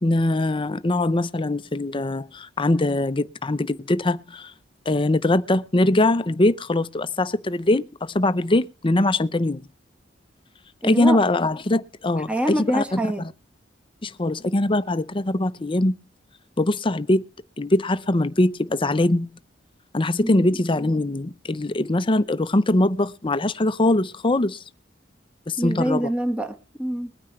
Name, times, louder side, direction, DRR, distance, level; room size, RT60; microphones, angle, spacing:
voice 1, 0.0-4.5 4.9-9.7 10.8-13.0 14.0-15.9 16.6-17.2 17.6-19.3 19.9-24.6 25.5-26.1, left 2 dB, 25° left, 0.7 m, -22 dB
voice 2, 10.8-11.2 12.3-13.2 20.2-20.4 25.6-27.1, right 1 dB, 5° right, 1.5 m, -25 dB
21.5 x 9.5 x 3.2 m
head